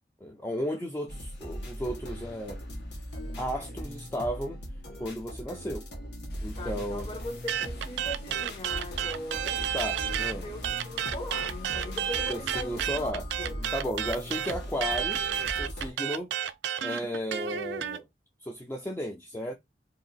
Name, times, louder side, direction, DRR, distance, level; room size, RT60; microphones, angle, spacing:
voice 1, 0.2-2.6 3.4-4.6 5.0-5.8 6.4-7.1 9.7-10.4 12.3-13.2 13.7-16.3 16.8-18.1 18.4-19.5, equal, 10° left, 0.4 m, -34 dB
sound 1, 1.1-15.9, equal, 75° left, 1.1 m, -39 dB
Water, 6.3-13.1, left 3 dB, 60° left, 0.7 m, -52 dB
voice 2, 6.6-9.7 10.4-13.6 14.3-14.4, left 1 dB, 30° left, 0.7 m, -40 dB
sound 2, 7.5-10.3 10.6-18.0, right 9 dB, 85° right, 0.3 m, -31 dB
2.8 x 2.4 x 3.9 m
head